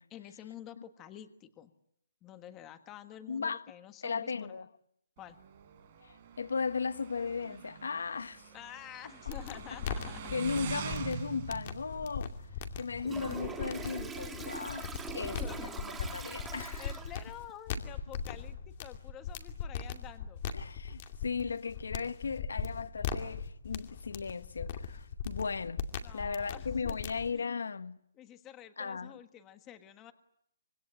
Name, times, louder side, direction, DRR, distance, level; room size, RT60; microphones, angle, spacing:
voice 1, 0.1-1.7 2.2-4.7 5.2-5.4 8.5-10.3 15.2-15.8 16.8-20.5 26.0-27.0 28.1-30.1, left 11 dB, 15° left, 1.4 m, -49 dB
voice 2, 3.3-3.7 4.0-4.7 6.0-8.5 10.3-12.3 12.8-16.9 20.5-25.9 26.1-28.0 28.8-29.2, left 5 dB, 90° left, 1.3 m, -36 dB
Motorcycle, 5.2-13.5, right 8 dB, 30° right, 4.4 m, -44 dB
sound 1, 9.3-27.3, left 7 dB, 30° left, 2.4 m, -39 dB
Toilet flush, 13.0-17.4, right 5 dB, 5° right, 1.7 m, -43 dB
25.5 x 24.5 x 8.9 m
hypercardioid pair, 170°, 0 cm